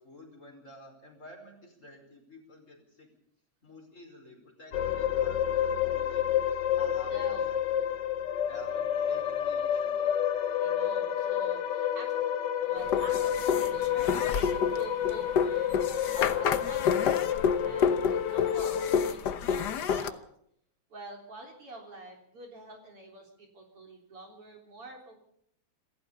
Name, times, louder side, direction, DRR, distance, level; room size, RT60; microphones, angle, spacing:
voice 1, 0.0-3.1 3.6-6.3 6.7-7.9 8.5-10.0, left 1 dB, 25° left, 3 dB, 5.1 m, -51 dB
sound 1, 4.7-19.1, left 10 dB, 65° left, 1.1 m, -29 dB
voice 2, 7.1-7.4 10.6-12.1 12.6-20.2 20.9-25.2, right 1 dB, 50° right, 2 dB, 4.4 m, -47 dB
sound 2, 12.9-20.1, left 6 dB, 90° left, 0.9 m, -29 dB
27.0 x 14.0 x 6.9 m, 0.71 s
omnidirectional pair, 3.3 m